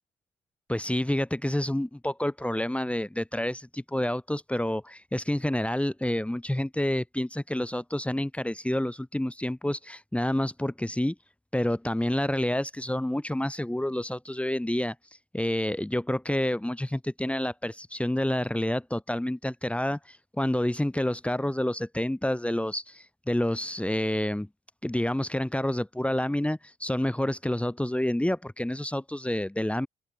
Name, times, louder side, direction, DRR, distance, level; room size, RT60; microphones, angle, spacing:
voice 1, 0.7-11.1 11.5-14.9 15.3-24.5 24.8-29.9, left 1 dB, 5° left, 2.7 m, -28 dB
open air
supercardioid pair, 65°, 18 cm